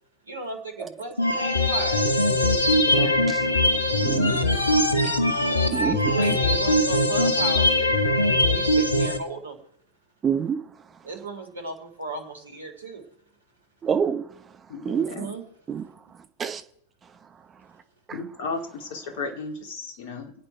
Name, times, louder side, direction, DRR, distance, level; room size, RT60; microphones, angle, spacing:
voice 1, 0.2-2.1 5.3-8.0 8.5-9.6 11.0-13.0 14.8-15.4, right 2 dB, 75° right, 3.6 m, -36 dB
sound 1, 1.2-9.2, left 1 dB, 80° left, 1.5 m, -21 dB
voice 2, 2.8-3.2 14.7-15.3 18.1-20.3, left 4 dB, 50° left, 2.5 m, -34 dB
voice 3, 4.0-4.4 5.0-5.2 5.7-6.0 6.3-6.4 10.2-10.7 13.8-14.4 14.8-15.1 15.7-16.6 18.1-18.2, right 7 dB, 20° right, 1.1 m, -28 dB
26.0 x 9.0 x 4.7 m
figure-of-eight pair, 90°, 0 cm